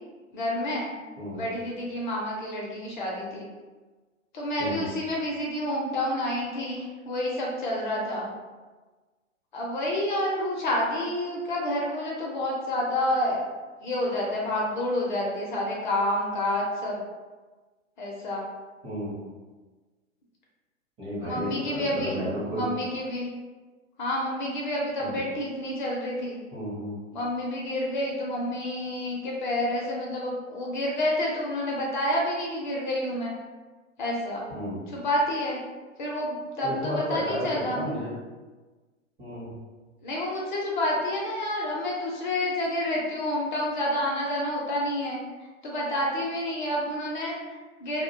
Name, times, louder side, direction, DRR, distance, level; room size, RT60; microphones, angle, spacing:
voice 1, 0.3-0.9 1.3-3.5 4.3-8.3 9.5-13.4 13.8-17.0 18.0-18.4 21.2-23.3 24.0-26.4 27.1-33.3 34.0-34.4 34.9-35.6 36.0-37.8 40.0-48.0, left 1 dB, 40° left, -3 dB, 0.5 m, -29 dB
voice 2, 18.8-19.2 21.0-22.7 25.0-25.2 26.5-27.0 34.5-34.8 36.6-38.1 39.2-39.5, equal, 15° right, -10 dB, 0.5 m, -32 dB
2.3 x 2.1 x 2.6 m, 1.3 s
figure-of-eight pair, 110°, 38 cm